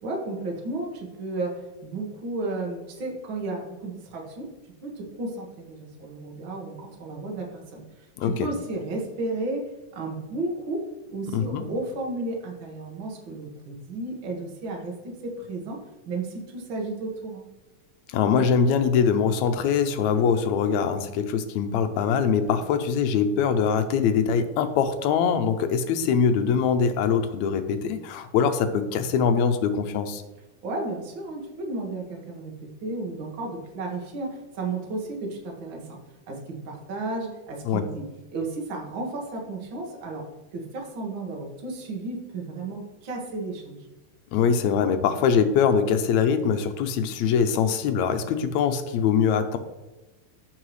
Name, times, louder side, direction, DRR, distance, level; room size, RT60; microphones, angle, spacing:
voice 1, 0.0-4.5 4.8-7.8 8.2-17.5 30.6-36.0 36.3-38.1 38.3-40.3 40.5-43.9, right 2 dB, 50° right, 0 dB, 1.8 m, -33 dB
voice 2, 8.2-8.5 11.3-11.6 18.1-30.2 37.7-37.8 44.3-49.6, left 6 dB, 75° left, 8 dB, 1.8 m, -23 dB
14.0 x 4.7 x 3.2 m, 1.1 s
omnidirectional pair, 3.5 m